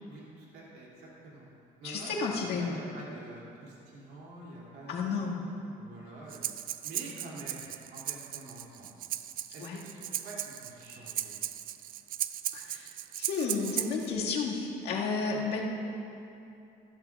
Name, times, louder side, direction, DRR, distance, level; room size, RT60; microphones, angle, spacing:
voice 1, 0.1-1.5 1.8-5.3 5.8-6.5 6.8-9.1 9.5-11.3 15.3-15.6, right 2 dB, 75° right, -4 dB, 2.7 m, -47 dB
voice 2, 1.8-2.8 4.9-5.4 9.6-9.8 12.5-12.9 13.2-15.6, left 4 dB, 75° left, -3 dB, 1.9 m, -32 dB
Breathing, 6.3-14.1, right 12 dB, 55° right, 0.4 m, -37 dB
14.5 x 13.0 x 2.4 m, 2.8 s
cardioid pair, 110°, 17 cm